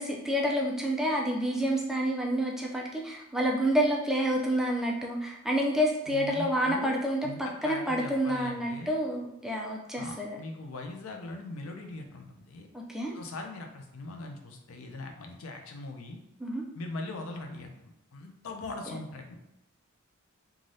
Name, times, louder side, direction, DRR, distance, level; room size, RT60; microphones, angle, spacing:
voice 1, 0.0-10.4 12.7-13.1 16.4-16.6 18.9-19.0, equal, ahead, -1 dB, 0.3 m, -29 dB
voice 2, 6.1-6.9 7.2-9.0 10.0-12.7 13.1-16.2 16.7-19.4, left 2 dB, 75° left, 3 dB, 0.5 m, -41 dB
3.2 x 2.3 x 2.6 m, 0.89 s
head